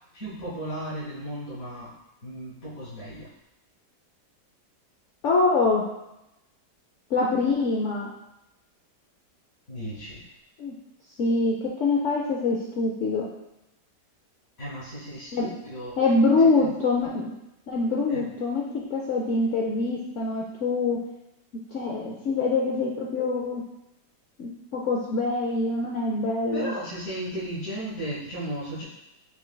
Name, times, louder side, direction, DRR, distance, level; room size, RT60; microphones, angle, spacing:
voice 1, 0.1-1.9 2.2-3.3 9.7-10.3 14.6-15.9 16.2-16.7 18.1-18.2 26.5-28.8, right 1 dB, 55° left, -10 dB, 1.7 m, -35 dB
voice 2, 5.2-5.8 7.1-8.1 10.6-10.7 11.2-13.3 15.3-15.5 16.0-17.3 17.7-21.0 21.7-23.6 24.4-26.7, left 3 dB, 75° left, -3 dB, 0.7 m, -24 dB
5.6 x 3.2 x 2.2 m, 0.90 s
omnidirectional pair, 1.8 m